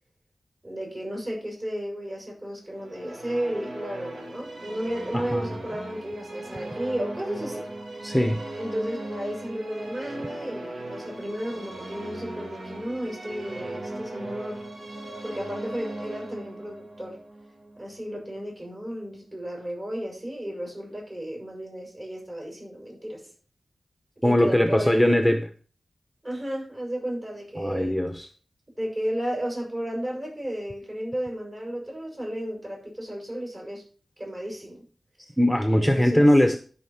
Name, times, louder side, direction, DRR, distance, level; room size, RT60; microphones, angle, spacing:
voice 1, 0.6-7.7 8.6-14.6 15.2-17.2 17.8-23.2 24.2-25.1 26.2-27.9 28.8-33.8 34.2-34.8 35.7-36.3, equal, 35° right, -1 dB, 6.9 m, -33 dB
Musical instrument, 2.7-18.2, right 2 dB, 75° right, 2.7 m, -38 dB
voice 2, 5.1-5.5 8.0-8.4 24.2-25.4 27.6-28.3 35.2-36.6, equal, ahead, 6 dB, 0.9 m, -21 dB
13.0 x 5.7 x 5.8 m, 0.42 s
wide cardioid pair, 105°, 0 cm